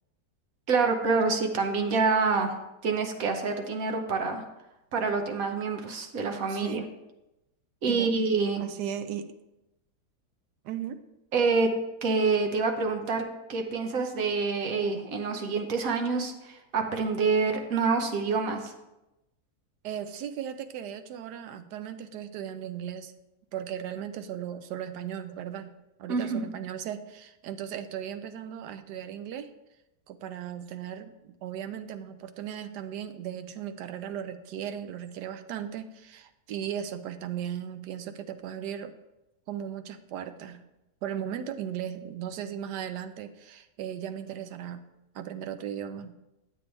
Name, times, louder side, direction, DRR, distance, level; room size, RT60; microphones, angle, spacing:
voice 1, 0.7-2.5 2.8-4.4 4.9-6.8 7.8-8.6 11.3-11.7 12.0-13.2 13.5-18.7 26.1-26.4, right 4 dB, 60° right, 5 dB, 1.2 m, -27 dB
voice 2, 6.5-6.9 7.9-8.1 8.6-9.3 10.6-11.0 19.8-23.1 23.5-25.7 26.0-29.5 30.1-39.0 39.5-40.6 41.0-44.8 45.1-46.2, right 9 dB, 85° right, 10 dB, 1.2 m, -37 dB
8.4 x 7.9 x 3.2 m, 0.95 s
omnidirectional pair, 1.8 m